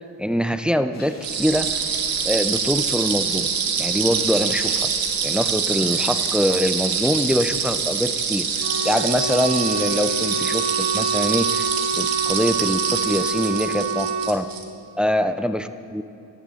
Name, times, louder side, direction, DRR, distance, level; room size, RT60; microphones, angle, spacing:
voice 1, 0.2-1.7 2.2-3.5 3.8-4.9 5.2-11.7 11.9-14.5 15.0-16.0, equal, 5° right, 10 dB, 0.3 m, -24 dB
sound 1, 0.9-10.9, left 3 dB, 45° left, 2.2 m, -42 dB
sound 2, 1.2-14.6, right 6 dB, 60° right, 1.5 m, -25 dB
Wind instrument woodwind instrument, 8.6-14.4, right 5 dB, 40° right, 0.6 m, -27 dB
18.5 x 13.5 x 4.1 m, 2.8 s
wide cardioid pair, 155°, 39 cm